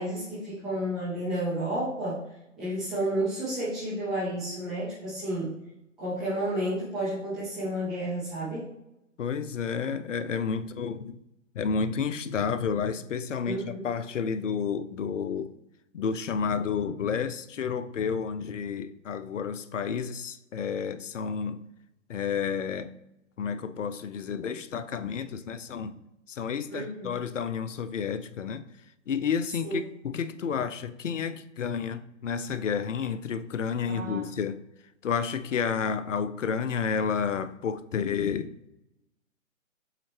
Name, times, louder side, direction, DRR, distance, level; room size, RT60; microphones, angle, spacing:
voice 1, 0.0-2.2 2.6-5.5 6.0-8.7 13.4-13.8 26.7-27.1 29.6-29.8 33.9-34.3, right 1 dB, ahead, 0.4 m, -31 dB
voice 2, 9.2-11.2 11.5-15.6 15.9-21.6 22.1-22.9 23.4-25.9 26.3-28.7 29.1-34.6 35.0-38.7, left 6 dB, 70° left, 0.6 m, -30 dB
7.5 x 4.2 x 3.3 m
figure-of-eight pair, 130°, 38 cm